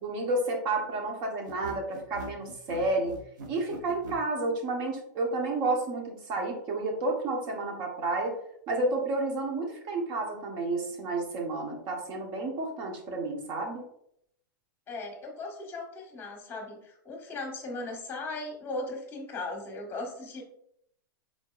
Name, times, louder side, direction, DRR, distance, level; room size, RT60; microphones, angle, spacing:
voice 1, 0.0-3.2 3.5-8.3 8.7-13.8, right 2 dB, 40° right, 1 dB, 1.3 m, -31 dB
sound 1, 1.5-4.2, right 3 dB, 60° right, 1.0 m, -42 dB
voice 2, 14.9-20.4, left 2 dB, 20° left, 1 dB, 1.6 m, -38 dB
4.5 x 3.9 x 2.5 m, 0.71 s
hypercardioid pair, 120°, 11 cm